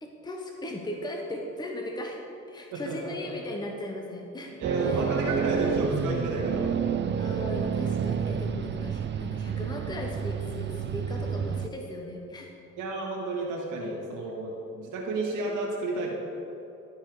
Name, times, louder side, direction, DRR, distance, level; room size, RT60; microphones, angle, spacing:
voice 1, 0.0-4.5 4.9-5.1 7.2-12.5, left 1 dB, 15° left, 1 dB, 0.9 m, -37 dB
voice 2, 2.7-3.3 4.6-6.8 12.8-16.1, right 2 dB, 85° right, -2 dB, 1.8 m, -31 dB
sound 1, 4.6-11.7, right 7 dB, 40° right, 0.4 m, -29 dB
12.5 x 4.6 x 4.7 m, 2.8 s
cardioid pair, 90°, 30 cm